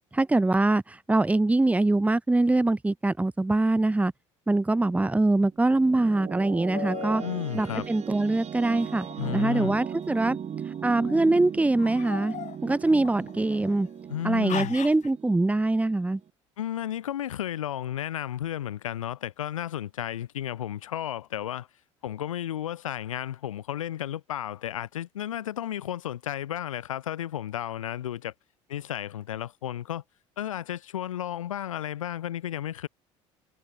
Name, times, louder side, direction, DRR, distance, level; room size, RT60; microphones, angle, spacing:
voice 1, 0.1-4.1 4.5-7.2 7.5-9.1 9.3-10.4 10.8-12.4 12.6-13.9 14.2-16.2, right 2 dB, 10° right, 0.7 m, -23 dB
sound 1, 5.5-16.3, right 8 dB, 40° right, 6.7 m, -38 dB
sound 2, 6.7-7.3 8.8-10.0 10.7-11.2 11.8-13.9 14.5-15.1, left 10 dB, 45° left, 6.2 m, -39 dB
voice 2, 7.2-7.9 9.2-9.8 14.1-14.7 16.6-21.7 22.0-28.3 28.7-30.0 30.4-32.9, left 11 dB, 85° left, 1.1 m, -33 dB
hypercardioid pair, 65°, 17 cm